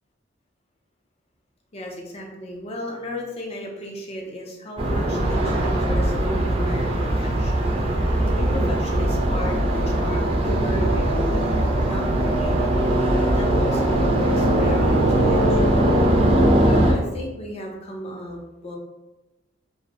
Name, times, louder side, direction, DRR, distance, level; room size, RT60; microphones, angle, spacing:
voice 1, 1.7-7.7 8.0-11.5 11.8-12.8 13.3-15.8 16.6-18.8, equal, 35° left, 0 dB, 0.5 m, -34 dB
sound 1, 4.8-16.9, right 1 dB, 30° right, 0.4 m, -20 dB
2.5 x 2.0 x 2.8 m, 1.0 s
head